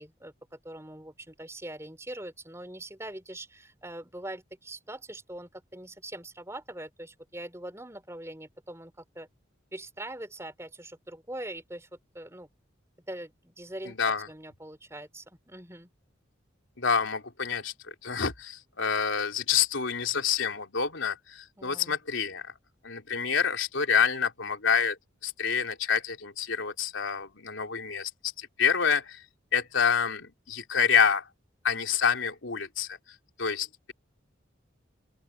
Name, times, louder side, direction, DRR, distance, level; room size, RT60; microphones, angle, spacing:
voice 1, 0.0-9.3 9.7-11.9 12.1-12.5 13.1-14.0 14.3-15.9 21.6-21.9, right 1 dB, 15° right, 4.2 m, -42 dB
voice 2, 13.9-14.3 16.8-22.5 22.8-25.0 25.2-29.2 29.5-31.3 31.6-33.0 33.4-33.9, left 6 dB, 85° left, 3.2 m, -27 dB
open air
head